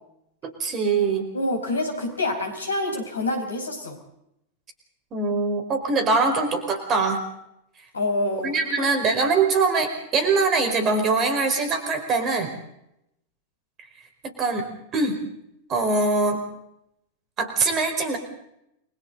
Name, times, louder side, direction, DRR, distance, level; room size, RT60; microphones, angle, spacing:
voice 1, 0.4-1.3 5.1-7.2 8.4-12.5 14.2-14.7 14.9-15.2 15.7-16.4 17.4-18.2, right 4 dB, 30° right, 5 dB, 5.0 m, -23 dB
voice 2, 1.3-4.0 7.9-8.9, left 2 dB, 75° left, 4 dB, 5.4 m, -27 dB
30.0 x 23.5 x 4.1 m, 0.79 s
figure-of-eight pair, 90°, 0 cm